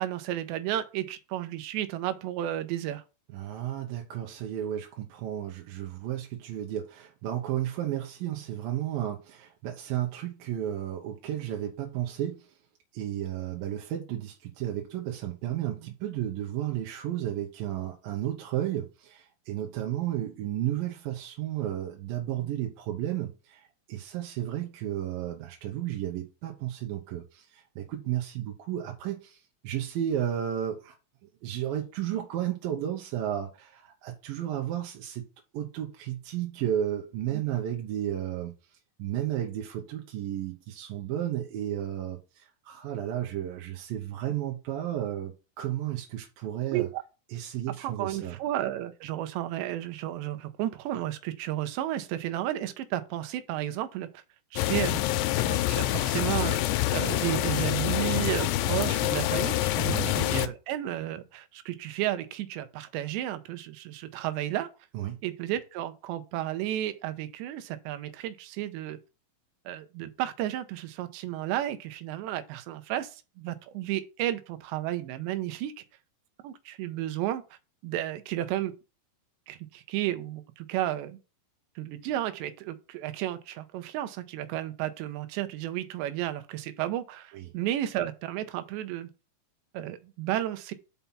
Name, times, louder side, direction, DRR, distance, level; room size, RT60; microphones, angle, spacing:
voice 1, 0.0-3.0 22.4-22.5 37.3-37.4 46.7-47.0 47.8-54.2 54.5-55.0 55.3-64.7 65.2-69.0 69.7-75.7 76.4-78.7 79.5-81.2 81.8-89.1 89.7-90.7, right 13 dB, 90° right, 3.1 m, -33 dB
voice 2, 3.3-12.5 12.9-30.9 31.4-35.3 35.5-38.5 39.0-46.9 47.3-48.4 59.9-60.2 64.9-65.2 87.3-87.5, right 11 dB, 70° right, 2.4 m, -33 dB
sound 1, 54.6-60.5, left 15 dB, 85° left, 2.8 m, -26 dB
5.8 x 5.6 x 5.6 m
omnidirectional pair, 4.9 m